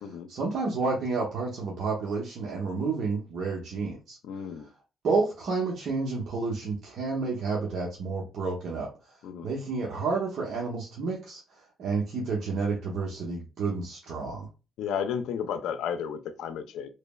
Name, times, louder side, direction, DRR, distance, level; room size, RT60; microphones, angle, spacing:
voice 1, 0.3-4.2 5.0-8.9 9.4-11.4 11.8-14.5, right 4 dB, 65° right, 0.8 m, -30 dB
voice 2, 4.2-4.7 9.2-9.5 14.8-16.9, left 7 dB, 85° left, 0.4 m, -33 dB
3.2 x 2.0 x 2.2 m
cardioid pair, 85°, 0 cm